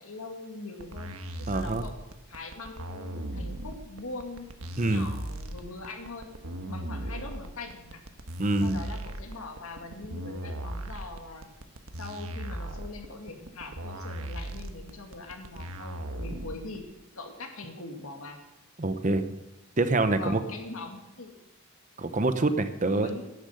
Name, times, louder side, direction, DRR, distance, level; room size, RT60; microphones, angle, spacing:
voice 1, 0.0-2.0 2.3-4.5 4.8-6.3 6.7-8.0 8.6-11.5 12.0-16.9 17.1-18.4 20.2-21.3 22.9-23.3, left 3 dB, 75° left, 4 dB, 2.3 m, -42 dB
sound 1, 0.8-16.8, right 1 dB, 80° right, 1.3 m, -37 dB
voice 2, 1.5-1.8 4.8-5.1 8.4-8.8 18.8-19.2 19.8-20.4 22.0-23.1, right 2 dB, 35° right, 10 dB, 0.9 m, -25 dB
12.0 x 10.5 x 7.9 m, 0.93 s
head